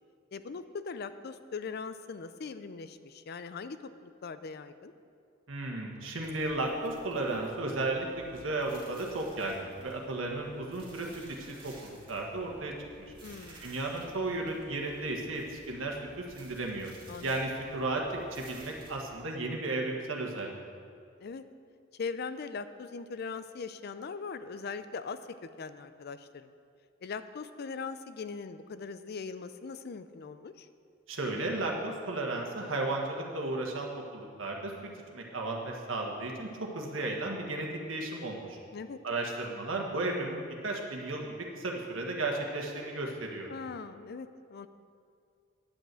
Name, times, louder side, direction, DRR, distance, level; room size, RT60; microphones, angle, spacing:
voice 1, 0.3-4.9 13.2-13.7 17.1-17.4 21.2-21.4 22.0-26.5 27.0-30.7 38.7-39.0 43.5-44.7, left 5 dB, 55° left, 12 dB, 0.4 m, -40 dB
voice 2, 5.5-11.1 11.5-13.1 13.6-16.9 17.2-20.5 31.1-38.6 39.0-43.5, right 2 dB, 85° right, 0 dB, 1.5 m, -34 dB
sound 1, 6.2-18.9, right 1 dB, 25° right, 2.3 m, -55 dB
10.0 x 5.5 x 7.5 m, 2.3 s
head